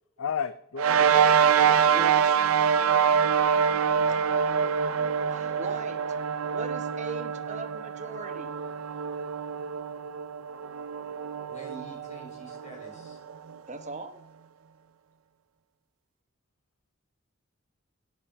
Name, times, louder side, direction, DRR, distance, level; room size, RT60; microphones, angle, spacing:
voice 1, 0.2-2.1 3.9-4.3, left 7 dB, 75° left, 13 dB, 0.5 m, -35 dB
sound 1, 0.8-13.5, right 7 dB, 85° right, 0.5 m, -25 dB
voice 2, 1.8-2.4 5.3-6.2 6.5-8.5 13.7-14.1, right 3 dB, 35° right, 6 dB, 1.0 m, -39 dB
voice 3, 11.4-13.2, right 3 dB, 35° left, 0 dB, 4.1 m, -47 dB
11.5 x 8.9 x 5.7 m, 0.72 s
head